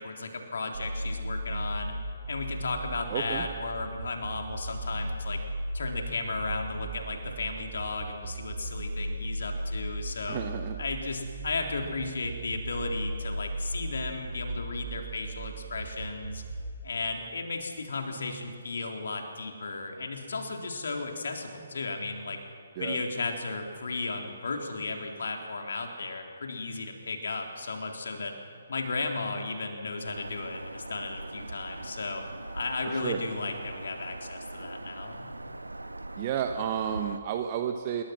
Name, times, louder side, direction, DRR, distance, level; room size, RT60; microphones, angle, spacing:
voice 1, 0.0-1.9 2.3-5.4 5.7-10.4 10.8-16.4 16.8-22.4 22.8-28.3 28.7-32.2 32.5-35.3, left 3 dB, 55° left, 3 dB, 3.6 m, -35 dB
sound 1, 0.7-16.7, right 1 dB, 55° right, 3.0 m, -36 dB
voice 2, 3.1-3.5 10.3-10.8 22.8-23.0 32.8-33.2 36.2-38.0, right 9 dB, 30° right, 6 dB, 1.1 m, -31 dB
Bird vocalization bird call bird song, 30.0-37.2, right 2 dB, 75° right, 1.1 m, -41 dB
27.0 x 22.0 x 6.0 m, 2.4 s
figure-of-eight pair, 135°, 0 cm